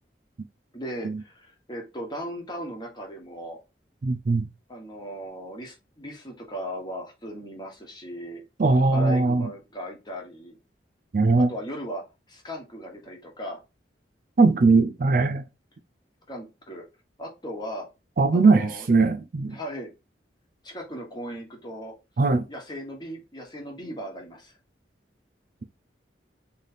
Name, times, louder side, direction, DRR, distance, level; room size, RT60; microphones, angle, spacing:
voice 1, 0.7-3.6 4.7-8.4 8.9-10.6 11.4-13.6 16.3-16.8 17.2-17.9 18.3-18.9 19.5-19.9 20.6-21.9 22.5-24.5, equal, 25° left, 1.1 m, -37 dB
voice 2, 4.0-4.5 8.6-9.5 11.1-11.5 14.4-15.4 18.2-19.5 22.2-22.4, right 3 dB, 50° right, 0.4 m, -20 dB
3.2 x 2.7 x 4.0 m
head